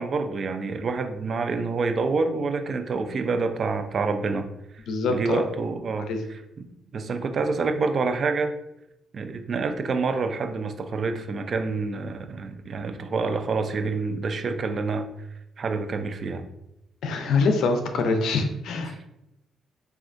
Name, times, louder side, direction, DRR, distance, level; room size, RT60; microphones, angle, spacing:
voice 1, 0.0-4.8 5.1-6.7 6.9-8.5 9.1-15.3 15.6-16.4 18.9-19.1, right 4 dB, 50° right, 8 dB, 0.4 m, -27 dB
voice 2, 4.9-5.5 6.1-6.2 17.0-19.1, left 3 dB, 75° left, 6 dB, 0.5 m, -24 dB
4.3 x 2.3 x 2.5 m, 0.85 s
cardioid pair, 90°, 0 cm